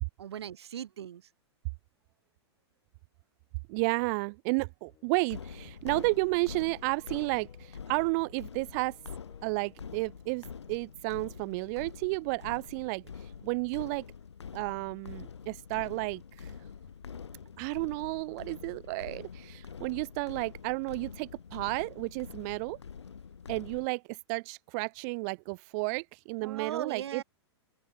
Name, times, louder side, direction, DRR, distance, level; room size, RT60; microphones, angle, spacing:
voice 1, 0.2-1.3 26.4-27.2, right 10 dB, 70° right, 1.0 m, -39 dB
voice 2, 3.7-9.0 9.4-14.0 14.5-16.5 17.6-22.8 23.5-27.2, right 32 dB, 40° right, 0.3 m, -32 dB
sound 1, 4.8-11.8, left 11 dB, 30° left, 7.3 m, -65 dB
sound 2, 5.3-23.9, left 6 dB, 80° left, 5.4 m, -46 dB
open air
figure-of-eight pair, 105°, 14 cm